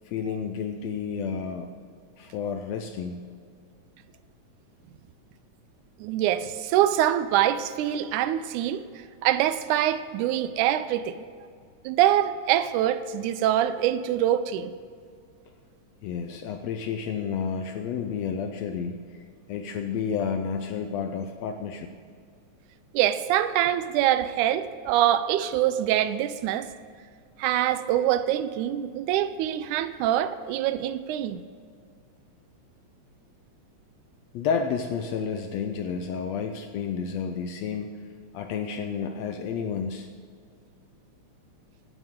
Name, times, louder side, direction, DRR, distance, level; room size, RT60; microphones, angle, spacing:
voice 1, 0.0-1.7 2.2-3.2 16.0-19.2 19.5-21.9 34.3-38.1 38.3-40.1, left 6 dB, 75° left, 1.6 m, -31 dB
voice 2, 6.0-8.8 9.2-11.2 11.9-14.7 22.9-26.7 27.4-31.4, right 12 dB, 85° right, 2.0 m, -24 dB
15.5 x 12.0 x 3.7 m
omnidirectional pair, 3.5 m